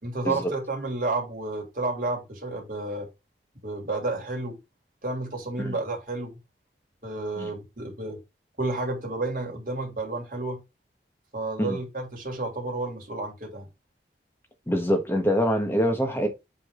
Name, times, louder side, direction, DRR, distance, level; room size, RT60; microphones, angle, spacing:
voice 1, 0.0-3.1 3.6-4.6 5.0-6.4 7.0-8.2 8.6-10.6 11.3-13.7, right 2 dB, 50° right, 3.0 m, -31 dB
voice 2, 14.7-16.3, equal, 15° left, 1.3 m, -24 dB
8.0 x 3.8 x 3.7 m
head